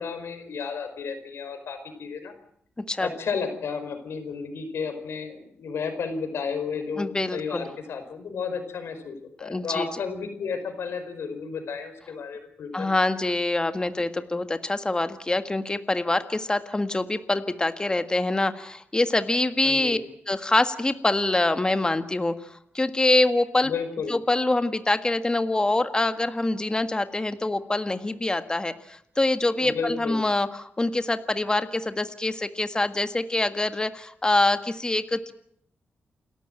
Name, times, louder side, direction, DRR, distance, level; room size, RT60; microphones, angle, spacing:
voice 1, 0.0-2.3 3.0-12.9 19.6-20.0 23.6-24.1 29.6-30.2, left 5 dB, 80° left, 8 dB, 5.0 m, -32 dB
voice 2, 7.0-7.6 9.4-9.9 12.7-20.0 20.3-23.7 24.1-35.3, left 2 dB, 20° left, 9 dB, 1.7 m, -25 dB
28.5 x 13.5 x 9.1 m, 0.69 s
cardioid pair, 90°, 4 cm